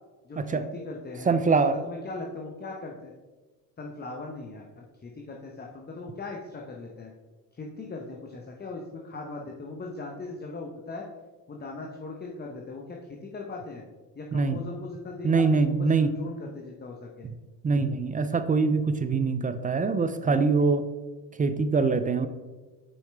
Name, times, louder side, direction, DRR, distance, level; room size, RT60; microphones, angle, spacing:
voice 1, 0.2-1.5 1.8-3.1 3.8-7.1 7.5-11.0 11.5-13.8 14.1-17.3, left 3 dB, 20° left, 0 dB, 0.8 m, -39 dB
voice 2, 1.3-1.8 14.3-14.6 15.2-16.1 17.6-20.8 21.4-22.3, right 4 dB, 20° right, 11 dB, 0.3 m, -23 dB
6.4 x 4.7 x 3.3 m, 1.3 s
supercardioid pair, 75°, 44 cm